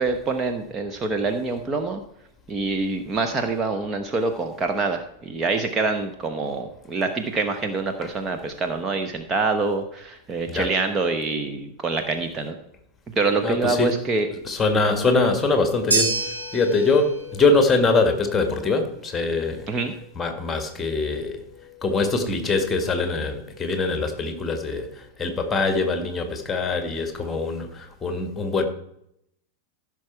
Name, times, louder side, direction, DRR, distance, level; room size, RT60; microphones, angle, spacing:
voice 1, 0.0-2.0 2.5-12.5 13.2-14.3 19.7-19.9, right 3 dB, 20° right, 6 dB, 1.0 m, -25 dB
voice 2, 13.4-14.0 14.4-19.7 20.2-21.4 21.8-28.7, left 3 dB, 15° left, 6 dB, 1.8 m, -23 dB
sound 1, 15.9-24.3, right 2 dB, 80° right, 3.1 m, -32 dB
15.0 x 6.2 x 4.6 m, 0.76 s
figure-of-eight pair, 90°, 0 cm